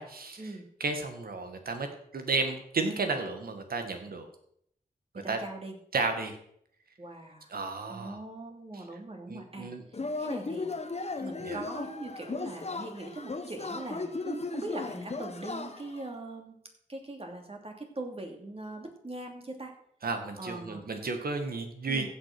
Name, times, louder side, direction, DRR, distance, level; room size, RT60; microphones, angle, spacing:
voice 1, 0.0-0.4 0.8-1.9 2.1-4.3 5.3-5.4 5.9-6.4 7.5-8.2 9.3-9.8 11.4-11.6 20.0-22.1, right 3 dB, 90° right, 6 dB, 1.9 m, -32 dB
voice 2, 5.1-5.8 7.0-7.5 7.9-9.7 10.2-10.7 11.2-16.6 16.9-19.7 20.4-20.8 21.9-22.1, right 2 dB, 40° right, 2 dB, 2.7 m, -41 dB
Yell / Cheering, 9.9-16.1, left 3 dB, 45° left, 1.2 m, -36 dB
15.5 x 6.3 x 6.1 m, 0.70 s
wide cardioid pair, 75°, 15 cm